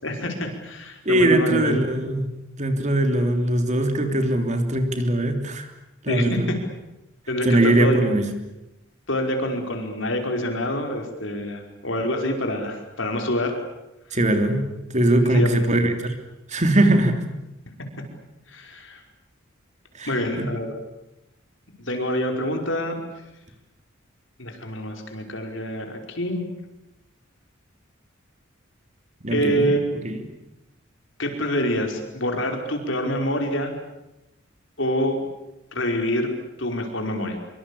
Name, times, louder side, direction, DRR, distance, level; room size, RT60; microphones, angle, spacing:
voice 1, 0.0-1.8 6.1-6.6 7.3-8.0 9.1-13.6 15.2-15.5 18.5-19.0 20.1-20.7 21.8-23.0 24.4-26.5 29.3-29.8 31.2-33.7 34.8-35.2 35.7-36.3 36.6-37.4, equal, 65° left, 4 dB, 5.2 m, -26 dB
voice 2, 1.0-5.7 6.0-6.5 7.4-8.3 14.1-14.7 14.9-16.2 16.5-17.2 20.0-20.5 29.2-29.7 30.0-30.2, right 1 dB, 35° right, 6 dB, 3.3 m, -21 dB
25.5 x 24.5 x 8.6 m, 0.92 s
head